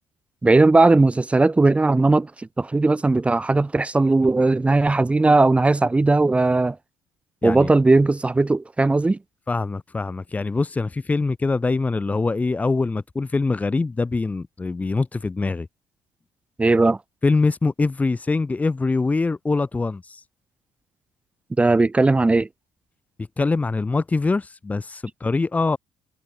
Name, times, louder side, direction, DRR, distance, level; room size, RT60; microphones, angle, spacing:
voice 1, 0.4-2.3 2.6-6.8 7.4-9.2 16.6-17.0 21.6-22.5, right 3 dB, 10° right, 4.7 m, -18 dB
voice 2, 9.5-15.7 17.2-20.2 23.4-25.8, left 3 dB, 15° left, 3.8 m, -23 dB
cardioid pair, 150°, 10 cm